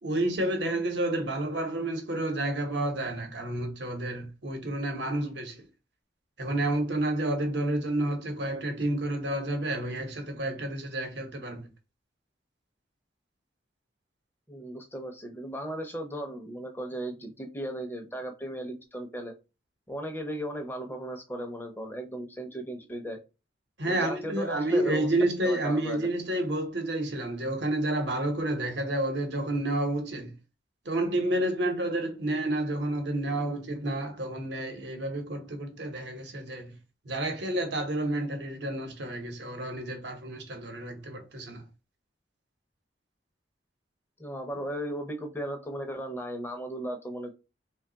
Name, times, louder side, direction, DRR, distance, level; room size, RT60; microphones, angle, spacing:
voice 1, 0.0-5.6 6.4-11.6 23.8-30.3 30.8-36.7 37.1-41.6, right 1 dB, 65° right, 0.9 m, -30 dB
voice 2, 14.5-19.3 19.9-23.2 23.8-25.1 25.4-26.1 44.2-47.3, right 1 dB, 10° left, 0.6 m, -36 dB
3.1 x 2.3 x 3.9 m
head